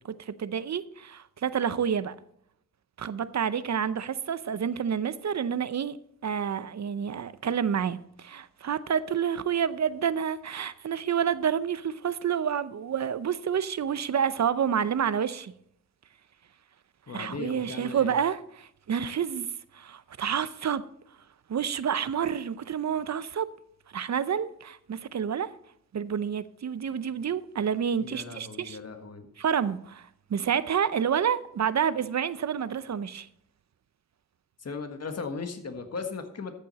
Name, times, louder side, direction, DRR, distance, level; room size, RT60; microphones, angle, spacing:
voice 1, 0.2-2.1 3.0-6.0 6.2-15.5 17.1-19.5 19.7-20.8 21.5-23.5 23.9-25.5 25.9-28.8 29.4-33.3, right 8 dB, 55° right, 0.6 m, -29 dB
voice 2, 17.1-18.2 28.0-29.3 34.6-36.5, left 4 dB, 45° left, 1.6 m, -37 dB
13.5 x 7.6 x 4.1 m
cardioid pair, 90°, 34 cm